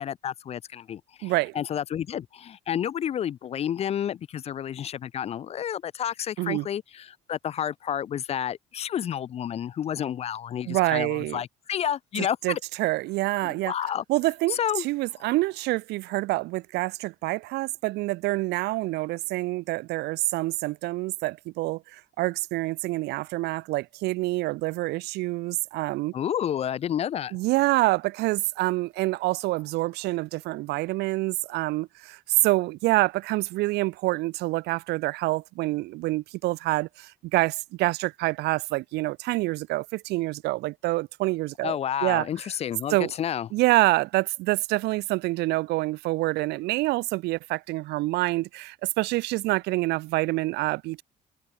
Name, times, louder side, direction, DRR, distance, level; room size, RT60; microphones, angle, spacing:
voice 1, 0.0-12.6 13.4-14.0 14.5-14.9 26.1-27.4 41.6-43.5, left 9 dB, 40° left, 0.4 m, -30 dB
voice 2, 1.2-1.5 6.4-6.7 10.7-11.4 12.4-13.7 14.1-26.1 27.3-41.8 42.0-42.3 42.9-43.1 43.5-51.0, right 20 dB, 80° right, 0.4 m, -26 dB
cardioid pair, 110°, 17 cm